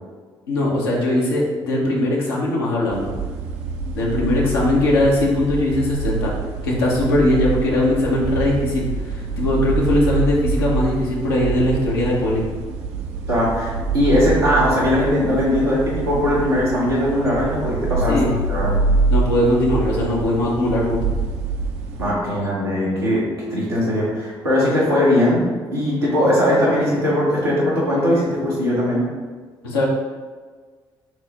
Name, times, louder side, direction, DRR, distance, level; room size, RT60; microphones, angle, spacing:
voice 1, 0.5-3.1 3.9-6.3 6.6-12.4 18.1-18.3 19.1-21.1 29.6-29.9, left 1 dB, 80° left, -3 dB, 0.7 m, -20 dB
sound 1, 2.9-22.1, right 4 dB, 65° right, 0.4 m, -25 dB
voice 2, 13.3-18.7 22.0-23.2 23.5-29.0, left 1 dB, 90° right, -7 dB, 0.9 m, -19 dB
5.9 x 2.0 x 2.9 m, 1.5 s
figure-of-eight pair, 40°, 12 cm